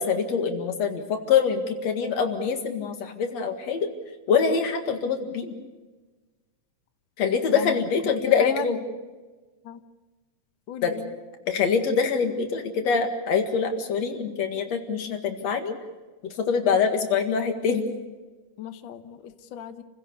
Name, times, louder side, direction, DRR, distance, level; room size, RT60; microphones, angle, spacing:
voice 1, 0.0-3.9 4.3-5.5 7.2-8.8 10.8-11.0 11.5-15.8 16.4-17.8, left 6 dB, 55° left, 5 dB, 2.9 m, -24 dB
voice 2, 8.2-8.7 9.6-9.8 10.7-11.1 18.6-19.8, left 10 dB, 85° left, 9 dB, 1.0 m, -35 dB
29.5 x 16.0 x 6.7 m, 1.3 s
omnidirectional pair, 3.7 m